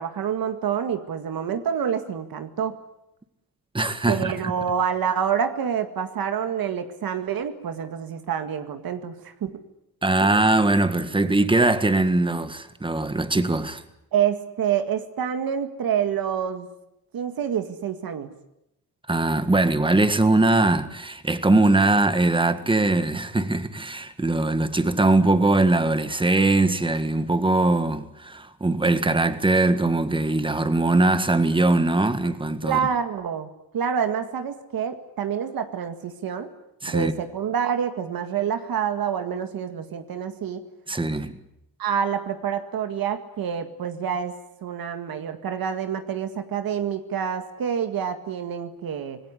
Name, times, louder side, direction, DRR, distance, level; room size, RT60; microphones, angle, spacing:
voice 1, 0.0-2.8 4.1-9.1 9.4-9.5 14.1-16.7 17.1-18.3 32.6-33.5 33.7-36.5 36.9-40.6 41.8-44.4 44.6-49.2, right 8 dB, 90° right, 2.0 m, -27 dB
voice 2, 3.7-4.5 10.0-13.8 19.1-32.8 36.8-37.1 40.9-41.4, right 2 dB, 15° right, 1.7 m, -21 dB
26.5 x 19.0 x 9.8 m
wide cardioid pair, 130°, 35 cm